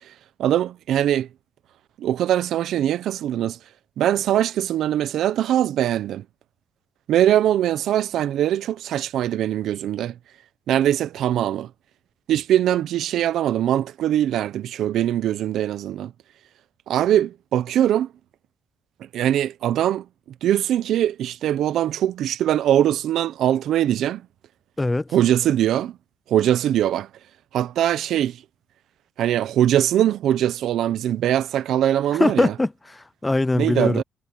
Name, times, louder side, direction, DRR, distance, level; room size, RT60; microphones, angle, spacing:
voice 1, 0.4-1.3 2.0-3.6 4.0-6.2 7.1-10.1 10.7-11.7 12.3-16.1 16.9-18.1 19.1-20.0 20.4-24.2 25.1-26.0 26.3-27.1 27.5-28.4 29.2-32.5 33.5-34.0, right 11 dB, 75° right, 0.8 m, -21 dB
voice 2, 32.2-34.0, left 2 dB, 15° left, 0.4 m, -21 dB
cardioid pair, 90°, 0 cm